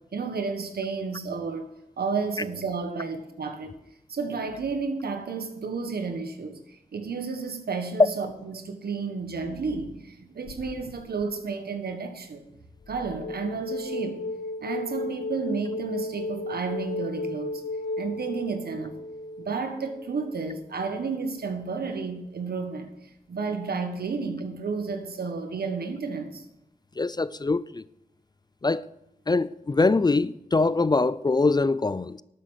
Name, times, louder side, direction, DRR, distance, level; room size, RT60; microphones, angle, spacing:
voice 1, 0.1-1.7 2.0-3.7 4.1-12.4 12.9-14.2 14.6-17.6 18.0-19.0 19.4-22.9 23.3-26.4, right 4 dB, 85° right, 1.5 m, -32 dB
sound 1, 10.5-11.2 12.9-20.5, left 2 dB, 65° left, 1.0 m, -35 dB
voice 2, 27.0-27.8 28.6-28.9 29.3-32.2, left 3 dB, 25° left, 0.4 m, -23 dB
12.0 x 8.3 x 6.5 m
wide cardioid pair, 75°, 16 cm